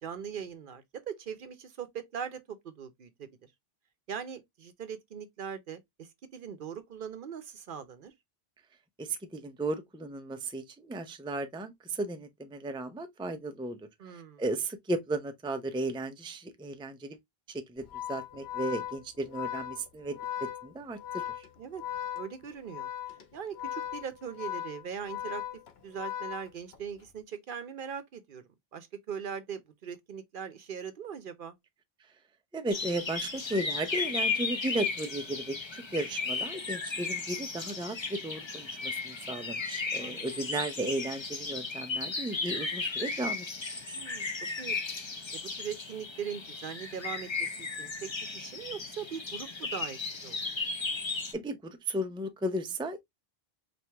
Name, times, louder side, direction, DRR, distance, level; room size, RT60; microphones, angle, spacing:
voice 1, 0.0-3.3 4.1-8.1 14.0-14.4 21.6-21.8 22.1-22.9 23.3-25.4 25.8-28.4 28.7-31.6 40.0-40.4 43.9-44.3 44.6-44.8 45.3-48.1 48.3-50.4, right 7 dB, 60° right, 0.8 m, -40 dB
voice 2, 9.0-13.9 14.1-17.2 17.5-21.5 32.5-43.5 43.9-44.0 51.1-53.0, right 2 dB, 5° right, 0.4 m, -35 dB
Organ, 17.8-27.0, left 11 dB, 80° left, 1.1 m, -38 dB
sound 1, 32.7-51.3, left 4 dB, 30° left, 0.7 m, -35 dB
4.6 x 2.5 x 3.3 m
omnidirectional pair, 1.0 m